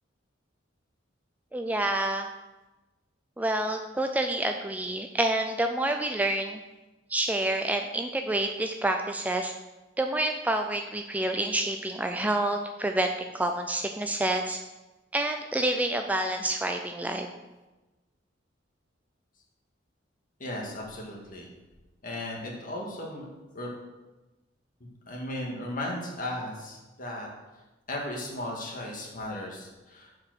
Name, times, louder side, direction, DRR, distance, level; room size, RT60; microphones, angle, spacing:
voice 1, 1.5-2.3 3.4-6.6 7.1-9.5 10.0-14.6 15.1-17.3, right 1 dB, 10° right, 5 dB, 0.3 m, -28 dB
voice 2, 20.4-21.5 22.0-23.2 23.5-23.7 24.8-27.3 27.9-30.1, left 1 dB, 45° left, -1 dB, 1.8 m, -36 dB
7.1 x 4.9 x 6.1 m, 1.1 s
head